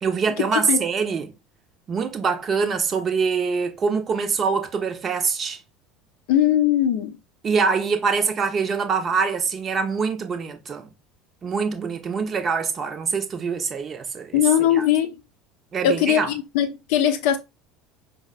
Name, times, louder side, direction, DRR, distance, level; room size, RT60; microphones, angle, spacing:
voice 1, 0.0-1.3 1.9-5.6 7.4-10.9 11.4-14.4 14.7-14.9 15.7-16.3, right 5 dB, 35° right, 0.6 m, -24 dB
voice 2, 6.3-7.1 14.3-15.1 15.8-17.4, left 10 dB, 60° left, 0.6 m, -20 dB
4.7 x 2.1 x 2.4 m
figure-of-eight pair, 70°, 0 cm